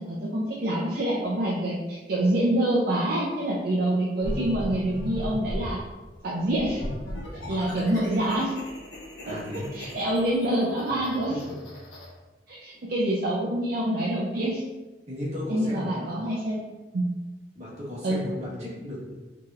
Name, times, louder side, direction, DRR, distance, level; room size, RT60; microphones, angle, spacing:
voice 1, 0.0-5.8 6.2-6.8 7.5-8.5 9.2-9.4 9.7-11.4 12.5-14.6 15.5-16.6 16.9-17.1 18.0-18.2, right 1 dB, 60° right, -5 dB, 0.5 m, -26 dB
sound 1, 4.2-5.8 6.5-12.1, left 1 dB, 90° left, 0.9 m, -37 dB
voice 2, 9.2-9.7 10.8-10.9 11.3-11.6 15.1-16.1 17.5-19.1, left 1 dB, 40° right, -7 dB, 1.4 m, -35 dB
4.7 x 2.9 x 2.4 m, 1.2 s
head